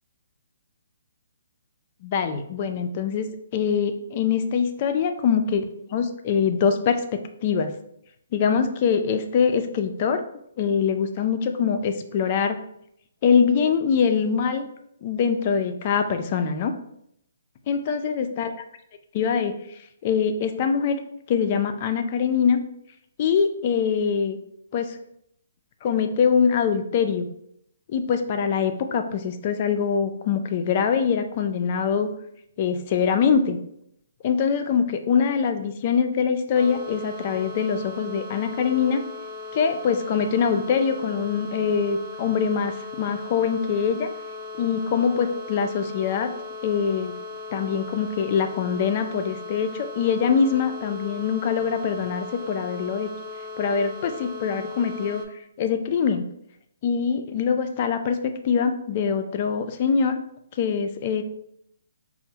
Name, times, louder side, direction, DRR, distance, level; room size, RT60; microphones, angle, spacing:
voice 1, 2.0-7.8 8.3-10.2 10.6-12.6 13.2-14.7 15.0-16.7 17.7-18.5 19.1-19.5 20.0-21.0 21.3-22.6 23.2-24.4 24.7-25.0 25.8-27.3 27.9-32.1 32.6-33.6 34.2-39.0 39.5-44.1 44.6-46.3 46.6-47.1 47.5-53.1 53.6-55.2 55.6-56.2 56.8-60.2 60.6-61.2, left 6 dB, 35° left, 7 dB, 0.3 m, -23 dB
sound 1, 36.5-55.3, left 3 dB, 5° right, 0.6 m, -38 dB
4.3 x 2.0 x 2.8 m, 0.73 s
hypercardioid pair, 160°, 0 cm